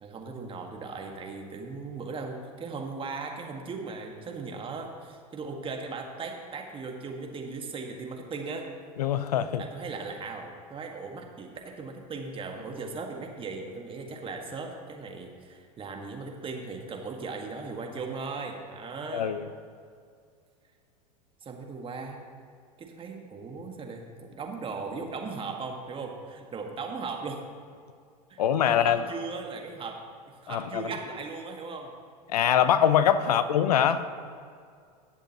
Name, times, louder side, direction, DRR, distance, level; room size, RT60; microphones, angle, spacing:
voice 1, 0.0-8.7 9.6-19.3 21.4-22.2 22.8-27.4 28.3-30.0 30.4-31.9 33.2-33.5, right 4 dB, 25° right, 2 dB, 1.6 m, -38 dB
voice 2, 9.0-9.6 19.1-19.5 28.4-29.0 30.5-30.9 32.3-34.0, left 9 dB, 75° left, 13 dB, 0.6 m, -23 dB
18.5 x 7.2 x 3.0 m, 2.2 s
hypercardioid pair, 90°, 20 cm